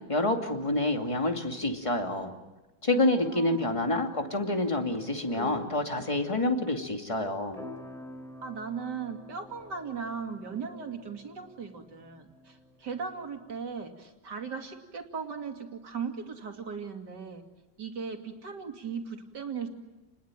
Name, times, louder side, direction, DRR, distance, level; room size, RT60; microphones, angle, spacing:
voice 1, 0.1-2.3 2.8-7.6, left 2 dB, 20° left, 4 dB, 2.6 m, -28 dB
voice 2, 2.9-3.8 8.4-17.4 17.8-19.7, right 6 dB, 80° right, 4 dB, 3.3 m, -38 dB
sound 1, 4.2-13.9, left 1 dB, ahead, 3.1 m, -49 dB
30.0 x 21.0 x 9.1 m, 1.1 s
omnidirectional pair, 1.8 m